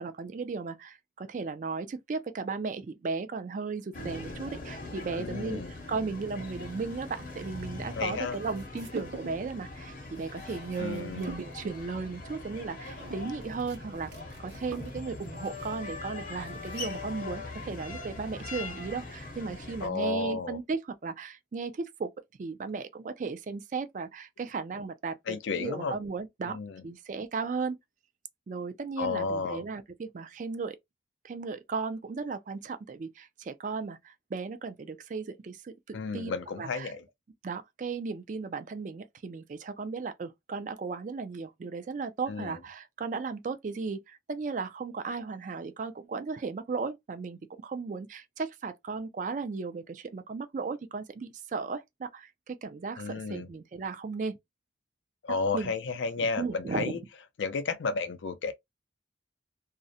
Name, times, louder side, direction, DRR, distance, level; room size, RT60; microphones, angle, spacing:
voice 1, 0.0-5.6 5.9-14.1 14.4-22.1 22.4-26.6 26.8-27.8 28.5-30.8 31.2-36.9 37.4-54.4 55.5-55.7 56.2-57.0, right 4 dB, 45° right, 0.3 m, -36 dB
sound 1, 3.9-19.9, left 3 dB, 45° left, 0.7 m, -41 dB
voice 2, 5.1-5.7 8.0-8.4 10.8-11.3 19.8-20.6 25.3-26.0 26.5-26.8 29.0-29.6 35.9-37.0 42.3-42.6 53.0-53.5 55.2-57.0 57.4-58.5, left 4 dB, 85° left, 0.4 m, -32 dB
sound 2, 8.3-9.6 9.9-17.2, right 3 dB, 70° right, 0.8 m, -47 dB
2.4 x 2.0 x 2.6 m
head